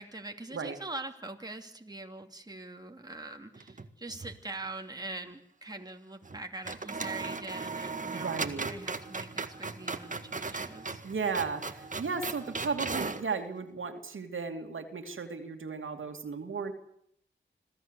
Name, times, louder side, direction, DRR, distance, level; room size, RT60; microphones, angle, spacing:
voice 1, 0.0-11.0, right 2 dB, 20° right, 3 dB, 2.7 m, -43 dB
sound 1, 3.5-4.4 4.6-4.7 6.2-6.4 6.6-13.3, right 4 dB, 40° right, 1.8 m, -37 dB
voice 2, 8.1-8.7 11.0-16.7, right 5 dB, 75° right, 5 dB, 2.6 m, -35 dB
26.0 x 15.5 x 8.3 m, 0.70 s
cardioid pair, 65°, 21 cm